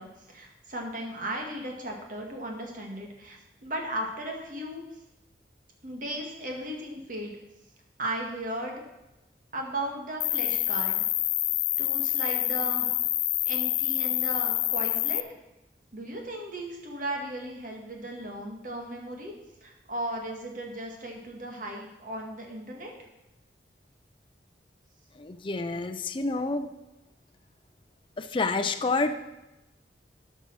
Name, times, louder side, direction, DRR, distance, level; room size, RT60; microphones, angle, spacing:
voice 1, 0.0-4.8 5.8-7.4 8.0-8.8 9.5-11.0 11.8-12.9 13.5-15.2 15.9-19.3 19.6-22.9, right 1 dB, 50° right, 1 dB, 1.9 m, -36 dB
Cricket, 10.2-15.2, left 16 dB, 80° left, 0.5 m, -27 dB
voice 2, 25.2-26.7 28.2-29.1, left 3 dB, 30° left, 7 dB, 0.5 m, -28 dB
13.0 x 5.5 x 6.1 m, 0.97 s
head